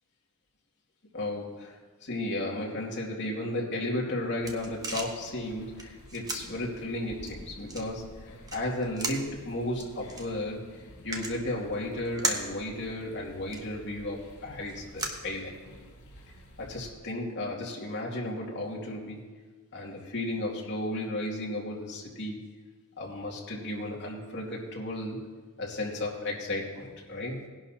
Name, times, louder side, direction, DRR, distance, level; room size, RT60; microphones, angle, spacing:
voice 1, 1.1-10.7 11.0-15.5 16.6-19.3 19.7-22.5 23.0-25.2 25.6-27.5, left 1 dB, 55° left, -3 dB, 2.5 m, -34 dB
sound 1, 3.9-16.0, right 2 dB, 15° right, 1.1 m, -40 dB
sound 2, 4.4-16.9, equal, 85° left, 3.8 m, -51 dB
19.5 x 11.0 x 2.9 m, 1.4 s
head